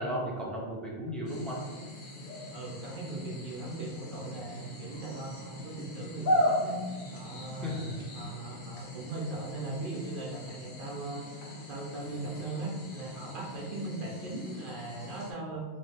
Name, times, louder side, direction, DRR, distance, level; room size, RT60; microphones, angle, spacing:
voice 1, 0.0-1.6 7.6-8.0, equal, ahead, -6 dB, 0.4 m, -34 dB
sound 1, 1.3-15.3, left 1 dB, 50° left, 0.7 m, -37 dB
voice 2, 2.5-6.8 7.1-7.8 8.1-11.3 11.7-15.6, right 2 dB, 60° right, -2 dB, 0.6 m, -39 dB
2.9 x 2.6 x 3.2 m, 1.4 s
omnidirectional pair, 1.2 m